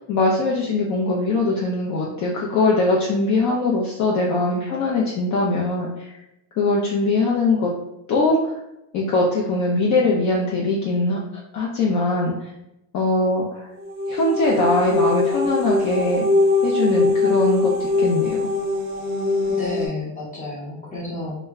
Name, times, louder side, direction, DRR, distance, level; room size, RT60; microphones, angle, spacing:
voice 1, 0.1-6.1 6.6-7.7 8.1-8.5 8.9-11.2 11.5-12.5 12.9-13.6 14.1-16.3 16.6-18.5, left 2 dB, 45° left, -3 dB, 0.5 m, -21 dB
sound 1, 13.8-19.9, left 3 dB, 25° right, 0.5 m, -22 dB
voice 2, 19.5-21.4, left 2 dB, 20° left, -3 dB, 0.8 m, -31 dB
2.1 x 2.0 x 3.4 m, 0.87 s
cardioid pair, 120°, 43 cm